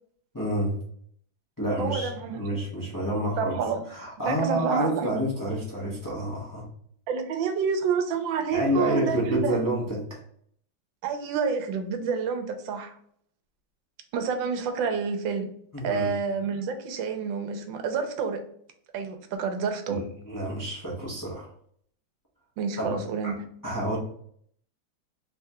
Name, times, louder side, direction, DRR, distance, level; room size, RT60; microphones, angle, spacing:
voice 1, 0.3-0.8 1.6-3.6 3.9-6.7 8.5-10.2 15.7-16.1 19.9-21.5 22.8-23.0 23.2-24.0, equal, 30° left, -4 dB, 0.3 m, -29 dB
voice 2, 1.8-2.4 3.4-3.8 4.3-5.1 7.1-9.6 11.0-13.0 14.1-15.5 15.8-18.4 18.9-20.0 22.6-23.3, right 6 dB, 80° right, 7 dB, 1.4 m, -28 dB
3.5 x 3.5 x 2.7 m, 0.63 s
omnidirectional pair, 2.1 m